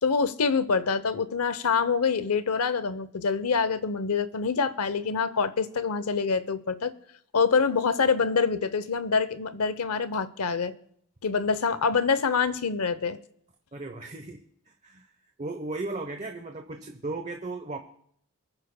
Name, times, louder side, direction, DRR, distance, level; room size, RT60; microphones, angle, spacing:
voice 1, 0.0-6.9 7.3-10.7 11.2-13.2, left 5 dB, 90° left, 14 dB, 0.7 m, -25 dB
voice 2, 13.7-14.4 14.8-15.1 15.4-17.8, right 2 dB, 30° right, 5 dB, 0.8 m, -35 dB
28.0 x 9.7 x 2.2 m, 0.69 s
head